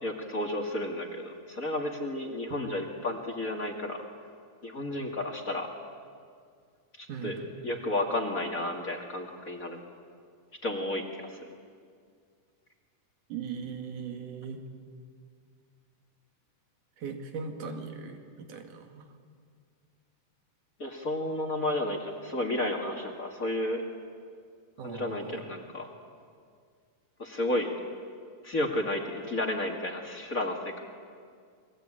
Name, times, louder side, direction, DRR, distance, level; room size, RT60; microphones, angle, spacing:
voice 1, 0.0-4.0 4.6-5.7 7.0-7.4 7.6-9.8 10.6-11.5 20.8-23.8 24.8-25.9 27.2-27.7 28.4-30.8, left 1 dB, 30° left, 2 dB, 2.3 m, -32 dB
voice 2, 7.1-7.6 13.3-14.6 17.0-19.1 24.8-25.5, right 5 dB, 90° right, 4 dB, 3.7 m, -39 dB
29.0 x 21.5 x 9.0 m, 2.1 s
omnidirectional pair, 3.5 m